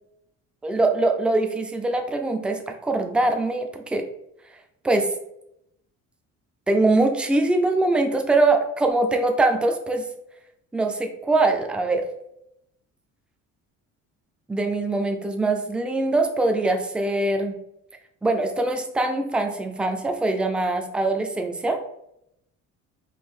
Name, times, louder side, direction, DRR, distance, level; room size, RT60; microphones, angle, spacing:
voice 1, 0.6-4.1 4.8-5.1 6.7-10.0 10.7-12.0 14.5-17.5 18.2-21.8, right 2 dB, 5° right, 4 dB, 0.3 m, -22 dB
4.3 x 2.6 x 3.7 m, 0.79 s
cardioid pair, 145°, 32 cm